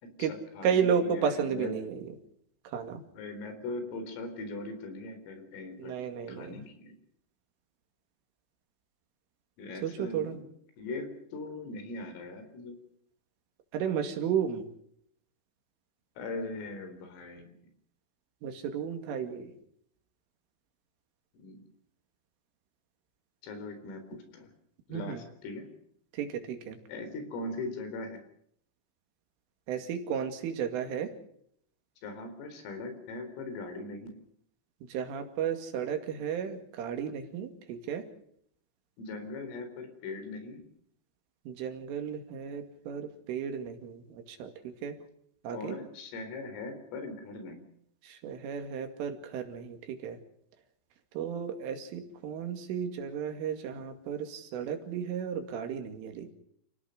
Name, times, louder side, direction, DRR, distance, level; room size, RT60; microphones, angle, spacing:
voice 1, 0.0-1.8 3.1-6.0 6.3-6.9 9.6-10.5 10.8-12.8 16.2-17.6 21.3-21.6 23.4-24.5 24.9-25.7 26.9-28.2 32.0-34.1 39.0-40.6 45.5-47.6, left 2 dB, 90° left, 8 dB, 6.7 m, -40 dB
voice 2, 0.6-2.1 2.7-3.0 5.8-6.6 9.8-10.4 13.7-14.7 18.4-19.6 24.9-25.2 26.1-26.8 29.7-31.1 34.9-38.1 41.5-45.0 45.4-45.8 48.0-50.2 51.1-56.3, right 7 dB, 80° right, 7 dB, 4.8 m, -33 dB
28.5 x 17.5 x 6.6 m, 0.70 s
omnidirectional pair, 5.7 m